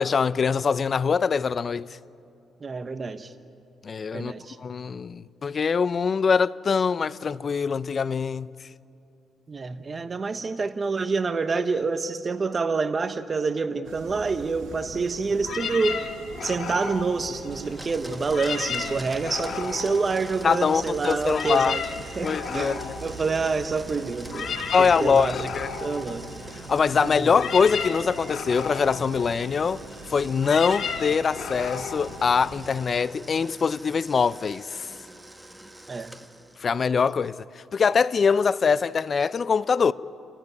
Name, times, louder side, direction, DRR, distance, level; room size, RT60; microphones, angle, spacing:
voice 1, 0.0-1.9 3.8-4.3 4.6-8.5 20.4-21.8 22.2-23.0 24.7-25.7 26.7-29.8 30.1-34.9 36.6-37.5 37.7-39.9, left 5 dB, 45° left, 0.5 m, -23 dB
voice 2, 2.6-3.3 4.1-4.6 9.5-16.1 16.4-21.8 22.2-25.5 25.8-26.3 27.0-27.4 35.9-36.1, right 4 dB, 35° right, 1.0 m, -27 dB
sound 1, 13.8-32.8, right 4 dB, 75° right, 2.2 m, -43 dB
sound 2, 15.4-17.9 18.2-20.8 21.1-33.0, left 6 dB, 60° left, 2.0 m, -35 dB
Domestic sounds home sounds, 17.5-36.7, right 1 dB, 5° right, 1.4 m, -45 dB
29.5 x 15.0 x 9.5 m
cardioid pair, 90°, 0 cm